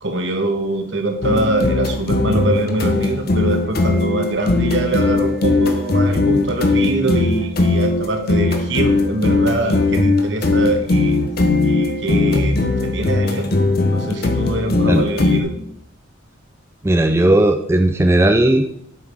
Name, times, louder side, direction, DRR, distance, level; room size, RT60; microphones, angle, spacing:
voice 1, 0.0-11.2 11.6-15.5, right 2 dB, 65° right, 5 dB, 1.3 m, -23 dB
sound 1, 1.2-15.4, left 2 dB, 50° left, 0.8 m, -19 dB
voice 2, 16.8-18.7, right 1 dB, 15° right, 5 dB, 0.4 m, -15 dB
8.4 x 5.8 x 4.9 m, 0.72 s
head